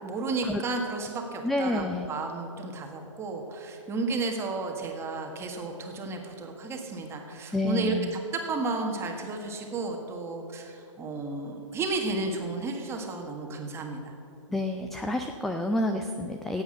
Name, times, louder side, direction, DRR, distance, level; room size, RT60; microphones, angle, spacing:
voice 1, 0.0-8.0 8.3-14.1, right 3 dB, 15° right, 3 dB, 1.6 m, -33 dB
voice 2, 1.4-2.1 7.5-8.1 14.5-16.6, left 2 dB, ahead, 5 dB, 0.3 m, -29 dB
17.0 x 8.1 x 6.5 m, 2.8 s
hypercardioid pair, 135°, 17 cm